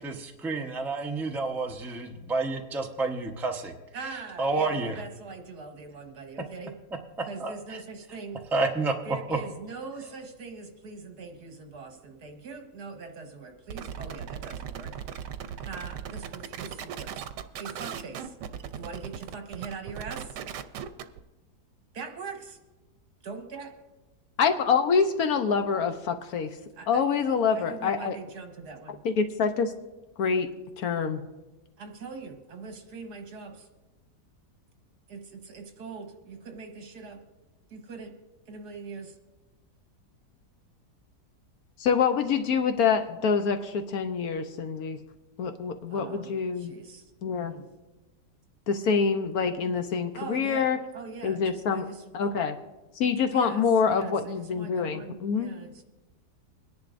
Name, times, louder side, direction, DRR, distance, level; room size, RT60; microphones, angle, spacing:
voice 1, 0.4-3.7 4.4-5.0 7.4-7.8 8.5-8.9, right 3 dB, ahead, 2 dB, 0.6 m, -29 dB
voice 2, 3.9-6.8 7.3-8.4 9.0-15.0 15.6-17.3 17.6-18.4 18.7-20.4 21.9-22.6 23.2-23.7 26.8-27.0 27.5-29.0 31.8-33.7 35.1-37.2 37.7-38.2 38.5-39.2 45.9-47.7 50.1-52.4 53.2-55.8, right 4 dB, 70° right, 4 dB, 1.8 m, -42 dB
sound 1, 13.7-21.2, right 8 dB, 85° right, 1.3 m, -38 dB
voice 3, 24.4-26.6 26.9-28.2 29.0-29.7 30.2-30.5 30.8-31.2 41.8-45.0 45.4-46.7 47.2-47.5 48.7-50.8 51.2-51.8 52.1-52.6 53.0-55.5, left 6 dB, 65° left, 7 dB, 1.1 m, -26 dB
23.5 x 10.5 x 2.6 m, 1.1 s
omnidirectional pair, 1.8 m